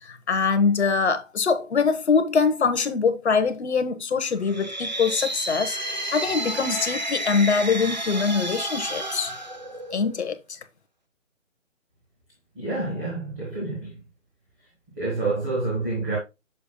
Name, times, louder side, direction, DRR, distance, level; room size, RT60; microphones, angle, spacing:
voice 1, 0.0-5.8 6.1-9.3 9.9-10.6, left 5 dB, 55° left, 1.0 m, -23 dB
sound 1, 4.4-10.3, right 1 dB, 35° right, 0.5 m, -31 dB
voice 2, 12.5-14.0 14.9-16.2, right 3 dB, 15° right, 1.7 m, -28 dB
6.8 x 6.6 x 2.2 m
hypercardioid pair, 170°, 40 cm